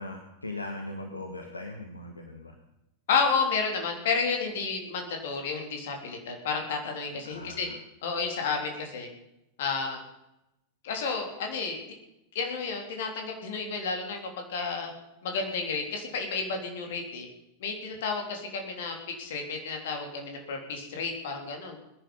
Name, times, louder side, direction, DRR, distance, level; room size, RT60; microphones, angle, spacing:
voice 1, 0.0-2.5 7.1-7.7, left 2 dB, 80° left, 3 dB, 1.7 m, -39 dB
voice 2, 3.1-7.7 8.0-9.1 9.6-10.0 10.8-11.8 12.3-14.9 15.2-17.3 17.6-21.8, left 5 dB, 55° left, 3 dB, 3.6 m, -31 dB
21.0 x 10.5 x 5.6 m, 0.87 s
figure-of-eight pair, 90°, 0 cm